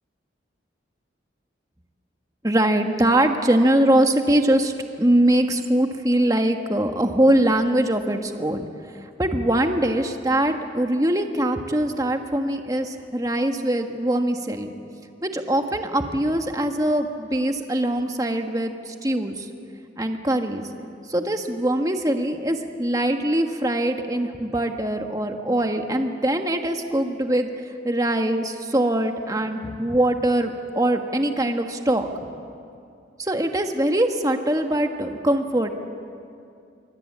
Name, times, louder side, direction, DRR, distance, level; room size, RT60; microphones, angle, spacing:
voice 1, 2.4-8.7 9.2-14.7 15.2-19.5 20.0-20.7 21.1-32.1 33.2-35.7, right 1 dB, 20° right, 5 dB, 1.5 m, -22 dB
25.0 x 24.5 x 8.7 m, 2.5 s
head